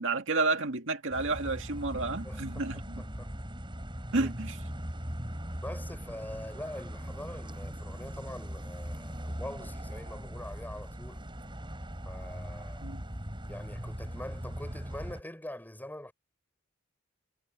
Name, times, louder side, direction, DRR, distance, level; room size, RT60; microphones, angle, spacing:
voice 1, 0.0-3.0 4.1-4.6 12.8-13.0, right 3 dB, 65° right, 2.2 m, -31 dB
sound 1, 1.1-15.2, equal, 25° right, 5.9 m, -40 dB
voice 2, 2.2-2.7 3.0-3.3 4.2-4.3 5.6-11.3 12.0-12.9 13.5-16.1, left 1 dB, 10° left, 5.1 m, -44 dB
head